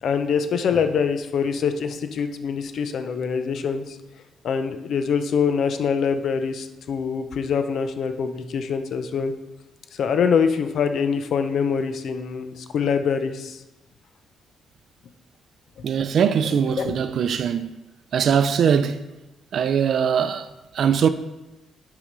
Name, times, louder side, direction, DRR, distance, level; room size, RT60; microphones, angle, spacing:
voice 1, 0.0-4.0 4.4-9.3 9.9-13.6 15.8-15.9 16.8-16.9, left 6 dB, 65° left, 0.7 m, -24 dB
voice 2, 15.8-17.7 18.1-19.0 19.5-20.5 20.7-21.1, right 7 dB, 60° right, 0.5 m, -21 dB
7.0 x 4.9 x 5.3 m
cardioid pair, 90°, 0 cm